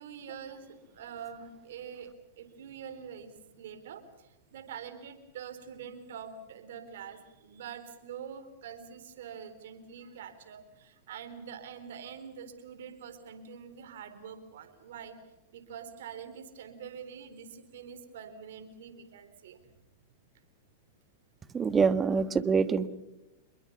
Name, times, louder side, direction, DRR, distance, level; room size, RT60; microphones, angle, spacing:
voice 1, 0.0-2.1 2.4-15.1 15.5-19.6, right 7 dB, 70° right, 10 dB, 3.9 m, -45 dB
voice 2, 21.5-22.9, right 5 dB, 20° right, 13 dB, 1.4 m, -25 dB
27.0 x 22.0 x 7.1 m, 0.98 s
hypercardioid pair, 115°, 0 cm